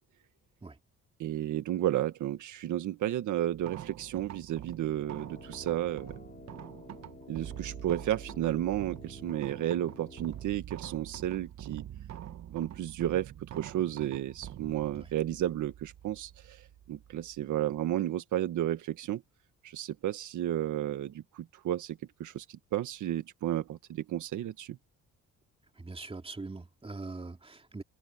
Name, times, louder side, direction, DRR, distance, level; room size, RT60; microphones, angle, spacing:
voice 1, 1.2-6.2 7.3-11.9 12.5-19.2 19.6-24.8, right 12 dB, 75° right, 1.7 m, -32 dB
sound 1, 3.5-17.8, right 11 dB, 60° right, 1.2 m, -46 dB
Brass instrument, 5.0-10.6, left 4 dB, 30° left, 3.0 m, -51 dB
voice 2, 25.8-27.8, right 3 dB, 20° right, 2.6 m, -42 dB
cardioid pair, 90°, 30 cm